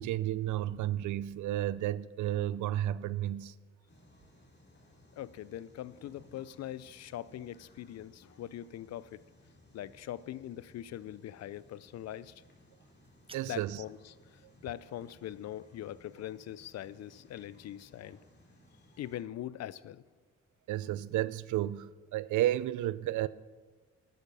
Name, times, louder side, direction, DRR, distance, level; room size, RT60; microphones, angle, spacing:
voice 1, 0.0-3.6 13.3-13.8 20.7-23.3, right 13 dB, 75° right, 0.5 m, -32 dB
sound 1, 3.9-19.2, left 1 dB, 35° left, 3.4 m, -61 dB
voice 2, 5.2-9.2 9.7-12.4 13.5-18.2 19.0-20.0, left 12 dB, 60° left, 0.5 m, -42 dB
sound 2, 12.8-13.9, right 4 dB, 20° right, 0.6 m, -56 dB
14.0 x 9.4 x 5.4 m
cardioid pair, 90°, 30 cm